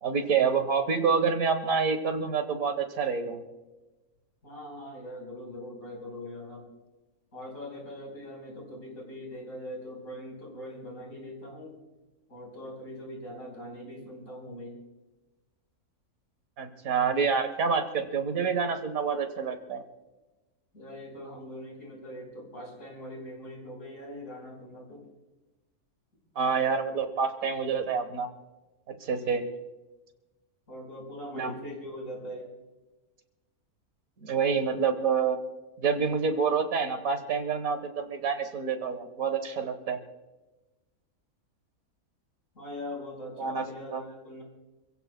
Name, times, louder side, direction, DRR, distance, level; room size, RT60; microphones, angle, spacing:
voice 1, 0.0-3.4 16.6-19.8 26.3-28.3 28.9-29.4 31.3-31.6 34.2-35.4 35.8-40.0 43.4-43.6 43.9-44.0, right 5 dB, 70° right, 8 dB, 1.7 m, -27 dB
voice 2, 4.4-6.7 7.3-11.8 12.3-14.8 20.7-25.0 30.7-32.5 42.5-44.4, left 1 dB, 60° left, -1 dB, 4.9 m, -42 dB
27.5 x 16.0 x 2.2 m, 1.1 s
omnidirectional pair, 1.6 m